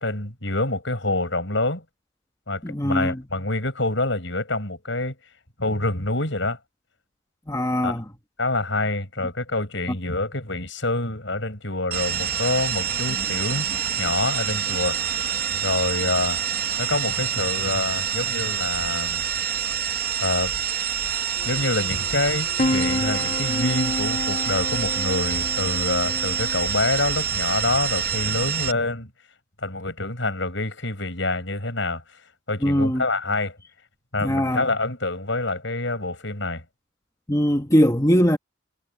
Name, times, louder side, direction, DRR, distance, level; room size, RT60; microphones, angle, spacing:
voice 1, 0.0-1.8 2.5-5.2 5.6-6.6 7.8-7.9 8.4-13.7 14.0-15.3 15.6-16.4 16.8-19.2 20.2-20.5 21.4-29.1 29.6-32.0 32.5-33.6 34.1-36.6, left 2 dB, 65° left, 8.0 m, -26 dB
voice 2, 2.6-3.2 7.5-8.1 32.6-33.0 34.2-34.7 37.3-38.4, equal, 15° left, 2.1 m, -21 dB
sound 1, 11.9-28.7, right 8 dB, 45° right, 1.4 m, -26 dB
sound 2, 21.4-26.8, left 1 dB, 40° left, 2.2 m, -29 dB
head